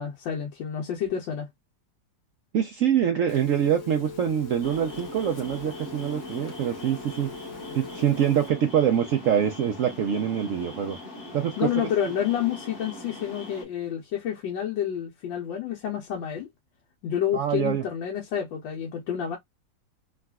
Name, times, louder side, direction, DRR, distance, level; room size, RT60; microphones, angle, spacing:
voice 1, 0.0-1.5 11.6-16.5 17.0-19.4, left 9 dB, 85° left, 1.5 m, -29 dB
voice 2, 2.5-7.3 7.7-11.0 11.3-11.9 17.3-17.8, right 9 dB, 80° right, 0.7 m, -25 dB
Telephone, 3.3-8.5, left 4 dB, 55° left, 1.0 m, -41 dB
sound 1, 4.6-13.6, left 1 dB, 35° left, 1.3 m, -41 dB
3.7 x 2.4 x 2.2 m
omnidirectional pair, 2.0 m